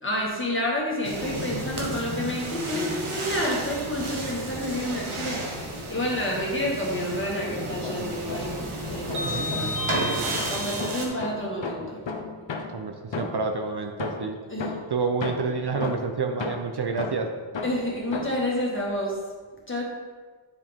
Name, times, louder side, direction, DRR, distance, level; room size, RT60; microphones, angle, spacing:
voice 1, 0.0-5.4 5.9-8.6 8.8-9.8 10.5-12.0 14.5-14.7 17.6-19.1 19.7-19.8, left 1 dB, 25° left, -3 dB, 2.0 m, -29 dB
sound 1, 1.0-11.1, right 1 dB, 75° right, 1.3 m, -32 dB
sound 2, 7.6-8.7 9.1-13.6 14.0-18.5, left 4 dB, 60° left, 0.8 m, -36 dB
voice 2, 12.7-14.4 14.9-17.3, right 4 dB, 55° right, 4 dB, 0.7 m, -28 dB
9.7 x 4.8 x 3.6 m, 1.4 s
wide cardioid pair, 60°, 50 cm